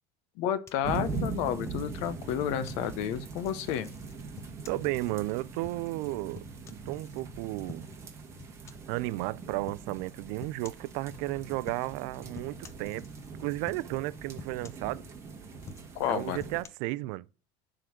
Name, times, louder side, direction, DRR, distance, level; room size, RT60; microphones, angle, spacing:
voice 1, 0.4-3.9 15.9-16.4, left 10 dB, 60° left, 0.9 m, -31 dB
sound 1, 0.7-2.9 3.4-7.2 7.7-8.1 8.4-9.0 9.7-9.9 10.4-10.9 11.6-12.1 12.3-13.3 13.7-14.1 14.4-15.2 15.6-16.7, left 6 dB, 20° left, 0.6 m, -49 dB
sound 2, 0.8-16.6, right 4 dB, 20° right, 1.4 m, -41 dB
voice 2, 4.7-7.9 8.9-13.0 13.4-15.0 16.1-17.2, right 19 dB, 65° right, 0.4 m, -33 dB
11.0 x 3.8 x 6.3 m
cardioid pair, 170°, 14 cm